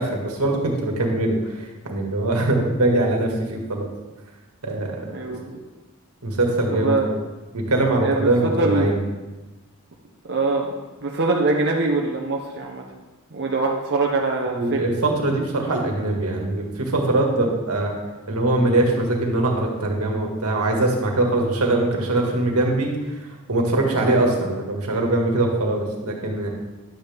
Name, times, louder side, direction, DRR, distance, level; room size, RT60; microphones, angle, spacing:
voice 1, 0.0-3.9 4.6-5.1 6.2-7.0 7.5-9.0 14.5-18.0 18.3-26.5, right 2 dB, 90° right, 0 dB, 1.9 m, -22 dB
voice 2, 5.0-5.6 6.7-7.1 8.0-9.0 10.2-10.7 11.0-12.8 13.3-14.9, right 3 dB, 50° right, -1 dB, 0.9 m, -23 dB
11.5 x 8.1 x 3.5 m, 1.2 s
head